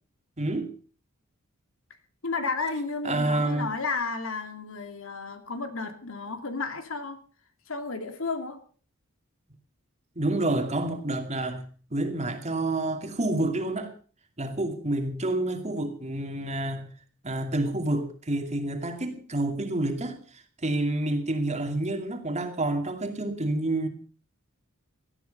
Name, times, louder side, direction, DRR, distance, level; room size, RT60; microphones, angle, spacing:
voice 1, 0.4-0.7 3.0-3.7 10.2-11.6 11.9-13.9 14.4-16.8 17.2-20.2 20.6-23.9, right 2 dB, 30° right, 2.4 m, -28 dB
voice 2, 2.2-7.2 7.7-8.6, left 4 dB, 65° left, 2.5 m, -32 dB
18.5 x 13.0 x 5.3 m
head